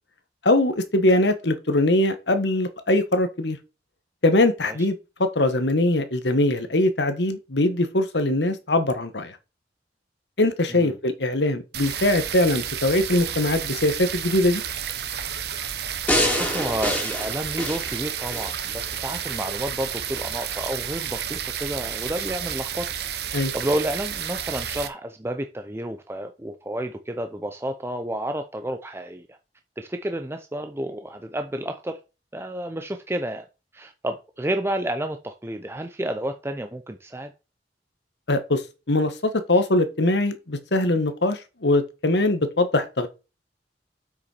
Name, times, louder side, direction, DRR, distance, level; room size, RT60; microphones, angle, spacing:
voice 1, 0.4-3.6 4.2-9.3 10.4-14.6 23.3-23.5 38.3-38.6 38.9-43.1, left 1 dB, 75° left, 1.5 m, -22 dB
sound 1, 11.7-24.9, right 9 dB, 70° right, 1.1 m, -31 dB
sound 2, 16.1-18.6 19.1-19.2, left 1 dB, 10° left, 2.9 m, -26 dB
voice 2, 16.3-22.9 23.5-29.4 29.8-32.0 32.3-33.4 33.7-37.3, right 1 dB, 15° right, 0.6 m, -30 dB
8.1 x 6.2 x 4.5 m
head